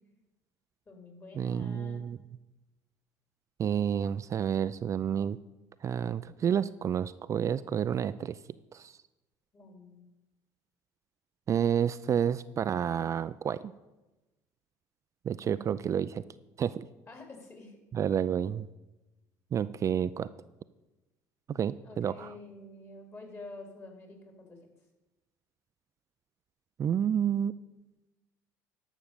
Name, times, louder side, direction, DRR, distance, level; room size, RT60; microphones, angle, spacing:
voice 1, 0.9-2.0 9.5-10.0 15.4-15.7 17.1-17.8 21.8-24.6, left 3 dB, 30° left, 3 dB, 3.6 m, -48 dB
voice 2, 1.4-2.2 3.6-5.4 5.8-8.4 8.7-9.0 11.5-13.7 15.2-16.2 16.6-16.9 17.9-18.7 19.5-20.3 21.5-22.3 26.8-27.5, right 8 dB, 40° right, 14 dB, 0.4 m, -30 dB
11.5 x 6.2 x 6.8 m, 1.1 s
hypercardioid pair, 70°, 8 cm